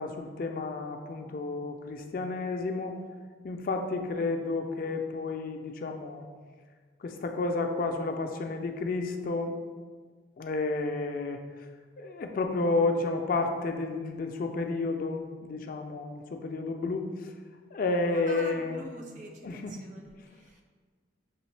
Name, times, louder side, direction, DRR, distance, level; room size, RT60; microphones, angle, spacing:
voice 1, 0.0-3.0 3.4-6.2 7.0-9.5 10.4-11.4 12.0-17.1 17.7-18.8 19.4-19.7, left 3 dB, 45° left, 4 dB, 0.3 m, -31 dB
voice 2, 18.1-20.6, right 1 dB, 40° right, 2 dB, 0.5 m, -45 dB
6.0 x 2.8 x 3.2 m, 1.5 s
head